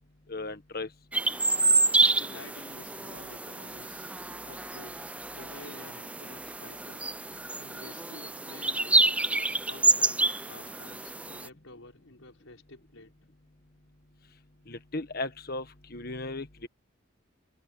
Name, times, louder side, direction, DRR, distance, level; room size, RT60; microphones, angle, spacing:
voice 1, 0.3-0.9 14.7-16.7, left 2 dB, 50° left, 1.5 m, -36 dB
sound 1, 1.1-11.5, right 3 dB, 5° right, 0.5 m, -28 dB
voice 2, 2.0-4.1 4.4-5.1 5.3-7.1 7.5-9.2 9.6-13.1, left 2 dB, 85° left, 5.7 m, -50 dB
head